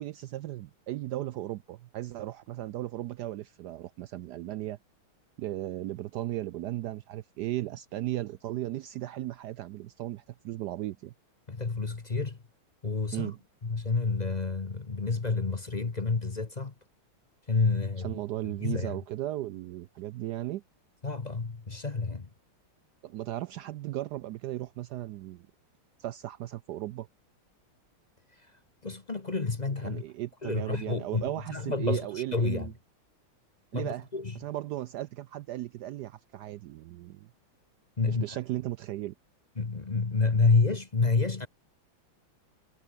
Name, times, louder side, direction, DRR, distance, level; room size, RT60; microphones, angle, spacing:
voice 1, 0.0-4.8 5.4-11.1 13.1-13.4 18.0-20.6 23.0-25.5 26.0-27.1 29.8-32.7 33.7-34.1 34.3-37.3 38.1-39.1, right 14 dB, 80° right, 0.9 m, -36 dB
voice 2, 11.5-12.4 12.8-13.3 13.6-16.7 17.5-19.0 21.0-22.3 28.8-30.0 30.4-32.7 33.7-34.4 38.0-38.4 39.6-41.5, left 4 dB, 25° left, 1.0 m, -29 dB
omnidirectional pair, 2.3 m